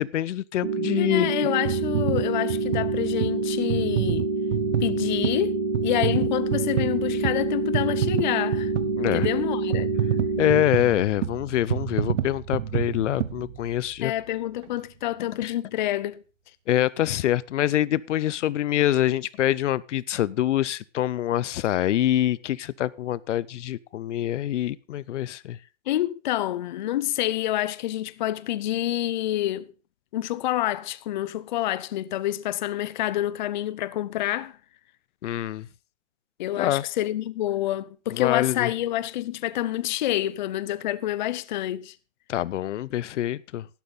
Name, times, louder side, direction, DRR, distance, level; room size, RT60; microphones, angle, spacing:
voice 1, 0.0-1.5 9.0-9.3 10.4-14.1 15.4-15.5 16.7-25.6 35.2-35.7 36.6-36.8 38.1-38.7 42.3-43.7, left 12 dB, 75° left, 0.7 m, -25 dB
sound 1, 0.6-10.6, right 3 dB, 30° right, 3.1 m, -27 dB
voice 2, 1.0-4.3 4.8-8.7 9.1-9.9 14.0-16.2 25.9-29.7 30.1-34.6 36.4-41.9, left 14 dB, 40° left, 0.5 m, -28 dB
sound 2, 1.7-14.1 14.6-14.7, right 10 dB, 75° right, 1.2 m, -29 dB
12.0 x 11.5 x 3.9 m
hypercardioid pair, 165°, 37 cm